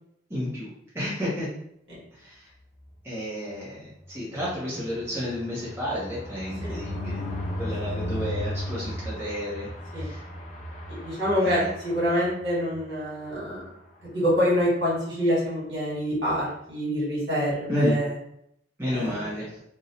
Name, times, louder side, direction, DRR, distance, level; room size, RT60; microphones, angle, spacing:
voice 1, 0.3-1.5 2.1-2.5 3.0-7.2 7.6-10.2 11.4-11.7 17.7-17.9 18.8-19.5, equal, 15° right, -9 dB, 0.6 m, -31 dB
sound 1, 4.0-12.8 13.2-13.4 13.7-13.8 14.0-14.3, left 1 dB, 40° left, 0.3 m, -35 dB
voice 2, 10.9-13.6 14.1-18.1 18.9-19.2, equal, 65° right, -6 dB, 1.3 m, -26 dB
2.5 x 2.0 x 2.8 m, 0.75 s
head